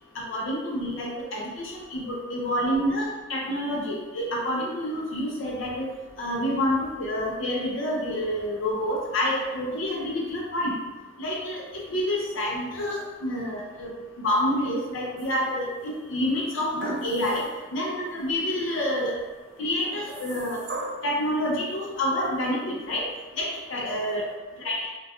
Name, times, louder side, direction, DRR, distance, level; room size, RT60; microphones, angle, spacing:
voice 1, 0.2-5.9 6.2-10.7 11.2-11.6 11.9-13.9 14.2-17.4 17.7-19.2 19.6-20.6 21.0-23.1 23.3-24.3 24.6-24.9, left 1 dB, 65° left, -2 dB, 0.4 m, -28 dB
sound 1, 15.2-15.8 16.8-17.6 18.1-18.2 19.8-21.2 22.3-22.4, right 2 dB, 55° right, 0.3 m, -37 dB
2.2 x 2.2 x 2.7 m, 1.2 s
head